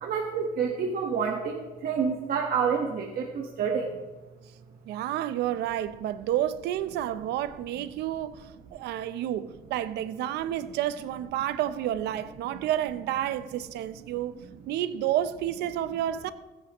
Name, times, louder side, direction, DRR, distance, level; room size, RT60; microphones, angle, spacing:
voice 1, 0.0-3.9, right 6 dB, 60° right, 1.4 m, -28 dB
voice 2, 4.9-14.4 14.7-16.3, right 12 dB, 80° right, 0.7 m, -30 dB
20.5 x 9.3 x 3.0 m
cardioid pair, 110°, 17 cm